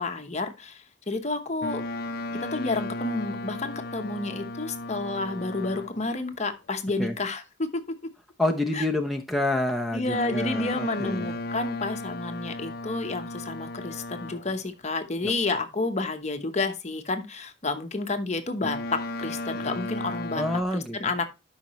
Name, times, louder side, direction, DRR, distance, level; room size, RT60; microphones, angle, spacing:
voice 1, 0.0-1.8 2.3-8.0 8.7-8.8 9.9-20.4 20.7-21.3, left 3 dB, 35° left, 1.0 m, -30 dB
Boat Water vehicle, 1.6-6.1 10.1-14.6 18.6-20.6, left 2 dB, 55° left, 0.6 m, -35 dB
voice 2, 8.4-11.4 20.3-21.0, left 1 dB, ahead, 0.7 m, -27 dB
12.0 x 5.8 x 3.1 m
head